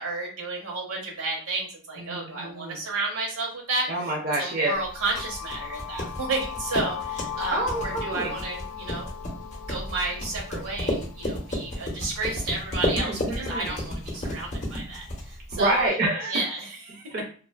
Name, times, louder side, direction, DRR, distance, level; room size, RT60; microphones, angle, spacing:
voice 1, 0.0-3.9 4.4-9.1 9.7-16.0 16.3-17.1, right 2 dB, 85° right, -1 dB, 0.9 m, -31 dB
voice 2, 2.0-2.8 3.9-4.7 7.5-8.3 12.9-13.7 15.5-16.4 17.1-17.3, right 2 dB, 40° right, -1 dB, 0.4 m, -27 dB
sound 1, 4.6-12.5, left 9 dB, 90° left, 0.4 m, -39 dB
sound 2, 4.8-15.9, left 1 dB, 30° left, 0.6 m, -33 dB
2.4 x 2.3 x 2.3 m, 0.40 s
head